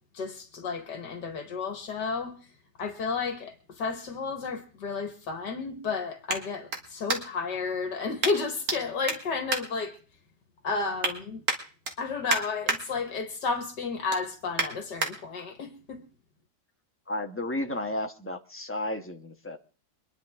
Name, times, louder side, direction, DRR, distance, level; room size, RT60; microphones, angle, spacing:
voice 1, 0.1-2.4 2.8-10.0 10.6-11.4 12.0-16.0, left 4 dB, 75° left, 2.1 m, -32 dB
sound 1, 3.4-7.6 8.2-8.8 9.0-10.4 10.7-11.1 11.4-12.8 13.2-13.5 13.8-15.1 15.7-15.8, right 3 dB, 55° right, 2.4 m, -32 dB
voice 2, 17.1-19.6, left 1 dB, 10° left, 0.9 m, -33 dB
24.0 x 10.5 x 3.6 m
omnidirectional pair, 1.9 m